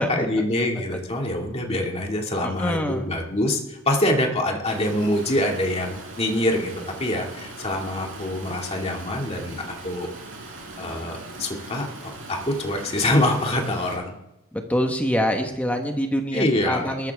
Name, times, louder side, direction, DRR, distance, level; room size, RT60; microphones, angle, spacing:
voice 1, 0.0-6.7 7.0-10.1 10.8-14.2 16.3-16.9, left 1 dB, 25° left, 0 dB, 2.3 m, -25 dB
voice 2, 2.4-3.1 14.5-17.1, equal, 5° left, 3 dB, 1.3 m, -25 dB
Stream, 4.6-14.0, right 2 dB, 60° right, 5.9 m, -40 dB
20.0 x 14.0 x 3.6 m, 0.94 s
head